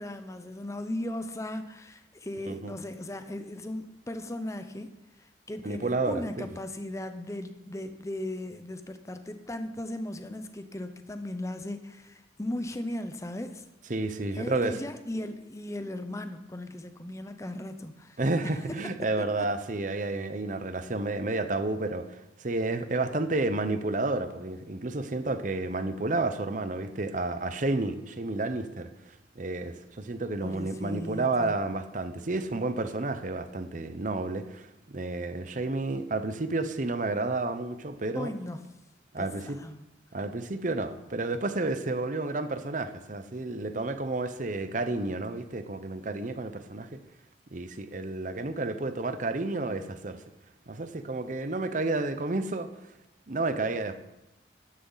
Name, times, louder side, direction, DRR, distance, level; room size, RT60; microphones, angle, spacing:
voice 1, 0.0-4.9 5.2-13.6 14.3-18.2 19.2-19.3 30.4-31.6 38.1-38.7 39.2-39.9, left 1 dB, 15° left, 9 dB, 0.7 m, -37 dB
voice 2, 5.6-6.5 13.9-14.8 18.2-28.9 29.4-38.3 39.1-39.6 40.1-47.0 47.5-50.2 50.7-52.7 53.3-54.0, right 2 dB, 45° right, 10 dB, 0.8 m, -31 dB
12.5 x 10.0 x 4.0 m, 0.94 s
head